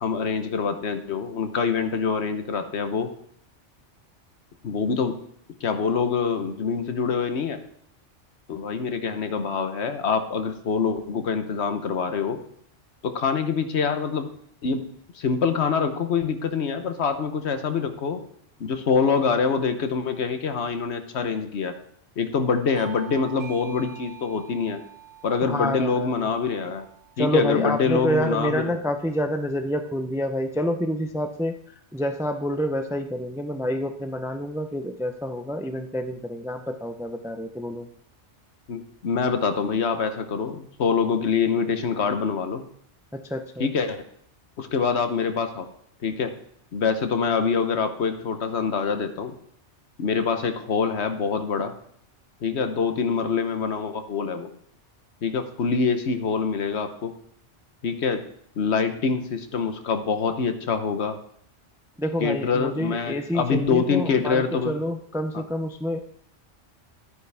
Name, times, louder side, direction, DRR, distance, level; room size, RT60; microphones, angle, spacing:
voice 1, 0.0-3.1 4.6-5.1 5.6-7.6 8.5-12.4 13.0-14.3 14.6-14.8 15.1-18.2 18.6-21.7 22.2-24.8 25.2-26.9 27.2-28.7 38.7-42.6 43.6-44.0 44.6-45.7 46.0-46.3 46.7-49.3 50.0-51.7 52.4-54.5 55.2-57.1 57.8-58.2 58.6-61.2 62.2-64.7, left 5 dB, 65° left, 8 dB, 1.2 m, -25 dB
Bell / Doorbell, 22.8-27.8, right 11 dB, 75° right, 1.6 m, -46 dB
voice 2, 25.4-26.3 27.2-31.5 31.9-37.9 43.1-43.7 62.0-66.0, equal, 5° right, 7 dB, 0.4 m, -28 dB
11.0 x 9.6 x 3.4 m, 0.69 s
omnidirectional pair, 1.2 m